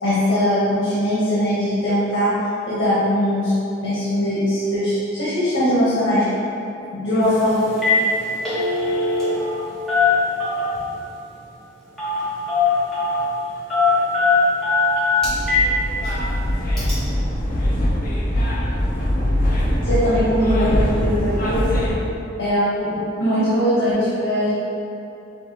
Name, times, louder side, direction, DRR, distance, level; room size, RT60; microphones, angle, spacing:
voice 1, 0.0-2.3 2.7-3.5 3.8-6.2 6.9-7.5 19.8-21.8 22.4-22.9 23.2-24.5, equal, 85° left, -10 dB, 1.1 m, -20 dB
Telephone, 7.2-7.4 7.7-8.0 8.3-9.6 9.9-10.8 12.0-12.2 12.5-13.2 13.7-15.7 16.1-16.2 16.8-16.9, left 4 dB, 5° left, 1.3 m, -19 dB
sound 1, 15.2-22.0, equal, 50° left, 0.7 m, -22 dB
6.5 x 2.6 x 2.9 m, 2.8 s
head